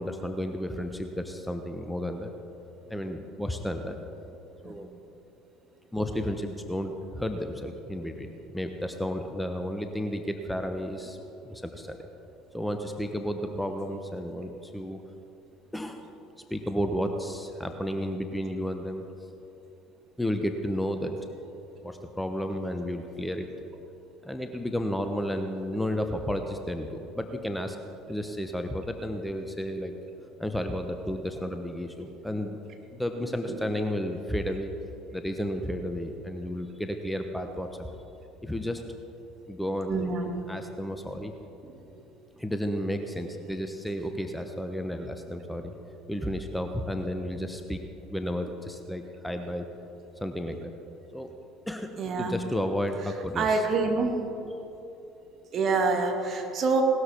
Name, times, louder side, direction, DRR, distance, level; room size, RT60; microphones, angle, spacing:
voice 1, 0.0-2.3 2.9-4.0 4.6-4.9 5.9-11.2 11.4-12.1 12.5-15.0 15.7-16.1 16.5-19.0 20.2-21.1 21.8-23.5 24.2-27.8 28.1-29.9 30.4-32.6 32.9-34.7 35.1-37.9 38.4-38.8 39.5-40.1 40.5-41.3 42.4-45.7 46.1-47.8 48.1-49.7 50.2-50.7 51.1-51.3 51.7-53.7, equal, 5° left, 6 dB, 1.0 m, -32 dB
voice 2, 39.9-40.3 41.6-41.7 52.0-52.3 53.4-54.1 55.5-56.8, right 4 dB, 45° right, 3 dB, 2.2 m, -26 dB
18.5 x 12.5 x 4.5 m, 2.9 s
hypercardioid pair, 65°, 0 cm